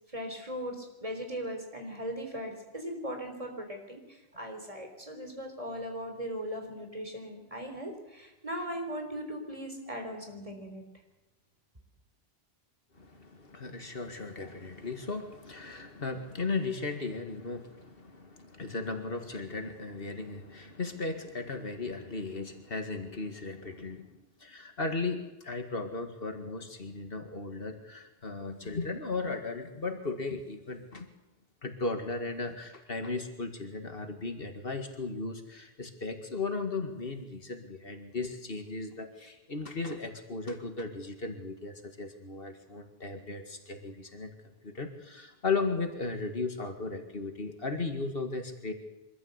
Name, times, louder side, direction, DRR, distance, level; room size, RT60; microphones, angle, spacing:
voice 1, 0.1-10.8, equal, 35° right, 3 dB, 4.1 m, -39 dB
voice 2, 12.9-31.1 31.6-44.3 44.6-48.7, left 3 dB, 65° left, 6 dB, 2.2 m, -36 dB
24.0 x 14.0 x 8.1 m, 1.0 s
omnidirectional pair, 1.1 m